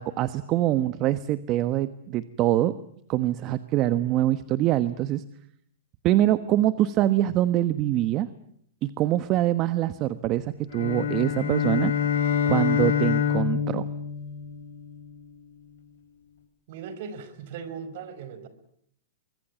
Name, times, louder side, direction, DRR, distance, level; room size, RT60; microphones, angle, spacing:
voice 1, 0.0-2.7 3.1-5.2 6.0-8.3 8.8-11.9 12.4-13.9, right 13 dB, 35° right, 14 dB, 1.2 m, -24 dB
sound 1, 10.7-15.1, left 7 dB, 70° left, 6.3 m, -26 dB
voice 2, 16.7-18.5, right 6 dB, 55° right, 13 dB, 5.1 m, -38 dB
25.0 x 22.5 x 9.4 m, 0.68 s
hypercardioid pair, 125°, 0 cm